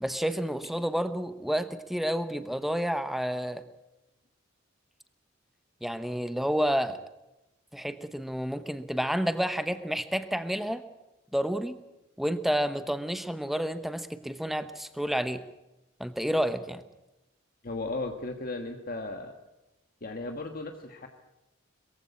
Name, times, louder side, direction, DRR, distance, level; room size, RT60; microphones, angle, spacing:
voice 1, 0.0-3.6 5.8-7.0 7.7-10.9 11.3-11.8 12.2-15.4 16.0-16.8, equal, ahead, 10 dB, 1.0 m, -30 dB
voice 2, 17.6-19.4 20.0-21.1, left 2 dB, 45° left, 4 dB, 1.4 m, -35 dB
22.0 x 15.0 x 8.4 m, 0.96 s
head